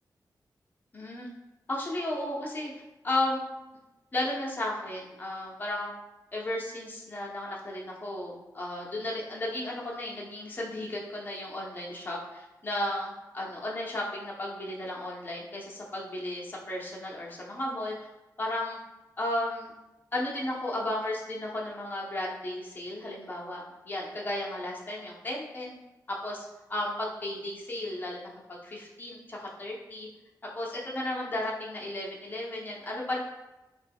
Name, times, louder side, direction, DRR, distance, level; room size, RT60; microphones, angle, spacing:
voice 1, 0.9-1.3 1.7-2.7 3.0-3.4 4.1-5.9 6.3-17.9 18.4-18.8 19.2-19.7 20.1-25.7 26.1-28.2 28.5-30.1 30.5-33.2, left 1 dB, 25° left, -4 dB, 0.7 m, -34 dB
4.0 x 2.2 x 3.4 m, 1.0 s
wide cardioid pair, 160°, 7 cm